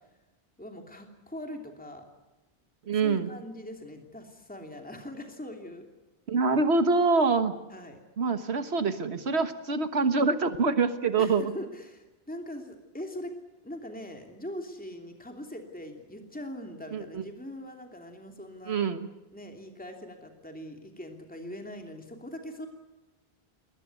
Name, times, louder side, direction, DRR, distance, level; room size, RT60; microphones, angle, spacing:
voice 1, 0.6-2.0 2.9-5.9 7.7-8.0 11.2-13.3 13.6-18.8 19.3-22.7, left 1 dB, 10° left, 3 dB, 2.9 m, -41 dB
voice 2, 2.9-3.3 6.3-7.5 8.2-11.5 16.9-17.2 18.7-19.1, right 4 dB, 85° right, 9 dB, 1.6 m, -25 dB
22.5 x 19.5 x 9.6 m, 1.0 s
omnidirectional pair, 1.1 m